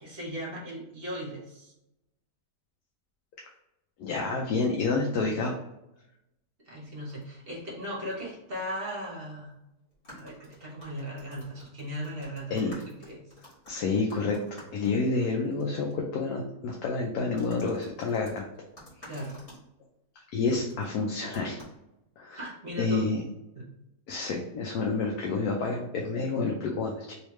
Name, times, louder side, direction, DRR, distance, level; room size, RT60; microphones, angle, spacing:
voice 1, 0.0-1.7 6.7-9.6 10.1-13.2 19.1-19.4 22.3-23.1 23.5-23.7, equal, 40° right, -3 dB, 1.1 m, -38 dB
voice 2, 4.0-5.6 12.5-12.7 13.7-18.5 19.0-19.1 20.3-21.6 22.2-22.4 22.8-23.2 24.1-27.1, left 3 dB, 75° left, 0 dB, 1.1 m, -29 dB
sound 1, 7.1-7.4 8.1-8.3 8.6-8.7 9.9-15.6 15.9-16.0 17.4-19.6 20.7-20.9 21.3-21.8, equal, 50° left, 1.9 m, -51 dB
3.2 x 3.1 x 3.1 m, 0.88 s
omnidirectional pair, 1.7 m